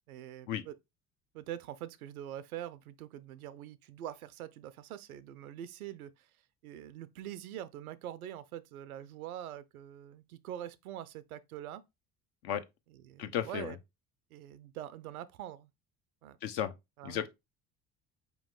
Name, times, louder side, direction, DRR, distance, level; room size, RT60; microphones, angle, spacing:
voice 1, 0.1-0.8 1.3-6.3 6.6-11.8 12.9-13.8 14.3-15.7 16.2-16.4 17.0-17.3, right 11 dB, 85° right, 0.5 m, -44 dB
voice 2, 13.2-13.7 16.4-16.7 17.0-17.3, left 10 dB, 65° left, 0.8 m, -34 dB
4.8 x 3.0 x 3.6 m
hypercardioid pair, 60°, 43 cm